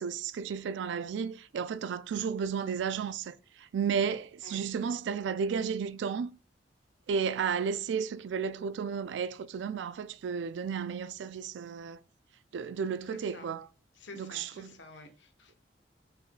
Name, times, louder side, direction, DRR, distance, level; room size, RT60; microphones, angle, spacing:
voice 1, 0.0-6.3 7.1-12.0 12.5-13.7 14.1-14.7, right 6 dB, 70° right, 0.3 m, -33 dB
voice 2, 13.1-13.5 14.0-15.5, left 2 dB, 80° left, 1.0 m, -50 dB
5.3 x 3.9 x 2.2 m
head